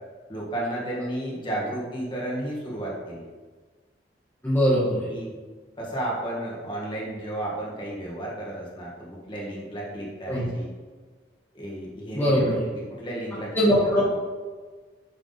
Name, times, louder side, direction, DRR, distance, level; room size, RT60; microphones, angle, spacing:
voice 1, 0.3-3.3 5.1-5.4 5.8-10.7 11.5-14.2, right 1 dB, 30° left, -4 dB, 1.7 m, -33 dB
voice 2, 4.4-5.1 10.3-10.4 12.1-12.6 13.5-14.0, equal, 10° left, -9 dB, 1.5 m, -21 dB
9.1 x 3.7 x 4.0 m, 1.4 s
head